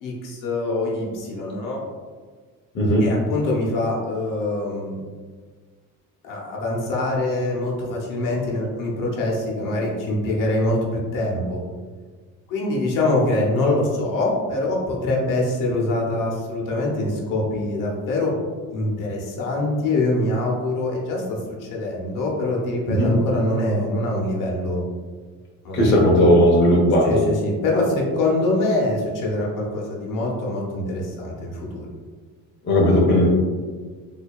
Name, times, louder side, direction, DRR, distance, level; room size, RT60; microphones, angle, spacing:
voice 1, 0.0-1.8 3.0-5.0 6.2-11.6 12.5-18.4 18.7-24.8 25.6-26.1 27.0-31.9, left 2 dB, 70° left, -2 dB, 0.9 m, -24 dB
voice 2, 2.7-3.1 22.9-23.1 25.7-27.2 32.6-33.3, equal, 35° left, -3 dB, 0.8 m, -16 dB
4.4 x 2.7 x 2.3 m, 1.5 s
cardioid pair, 150°, 33 cm